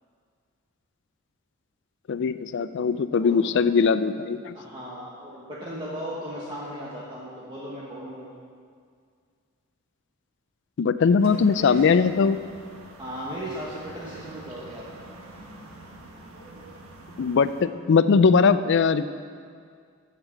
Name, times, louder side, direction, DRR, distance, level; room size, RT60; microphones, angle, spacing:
voice 1, 2.1-4.5 10.8-12.4 17.2-19.1, left 5 dB, 60° left, 13 dB, 0.4 m, -20 dB
voice 2, 4.5-8.3 11.6-11.9 13.0-14.9, equal, 20° right, -7 dB, 1.3 m, -36 dB
sound 1, 11.2-17.6, right 1 dB, 80° right, 1.3 m, -46 dB
8.2 x 7.4 x 7.3 m, 2.1 s
head